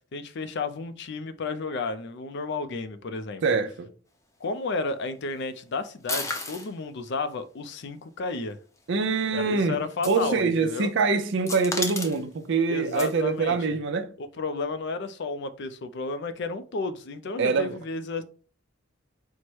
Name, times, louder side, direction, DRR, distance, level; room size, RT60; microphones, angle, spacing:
voice 1, 0.1-3.4 4.4-8.6 9.3-10.9 12.7-13.6 14.2-18.2, left 3 dB, 60° left, 0.5 m, -32 dB
voice 2, 3.4-3.9 8.9-9.8 10.1-14.1 17.4-17.8, right 4 dB, 65° right, 0.6 m, -24 dB
sound 1, 6.1-6.7 8.5-8.6 9.9-10.2 10.6-10.9 11.5-12.2 12.9-13.1, left 2 dB, 15° left, 0.6 m, -32 dB
4.5 x 2.1 x 4.5 m
head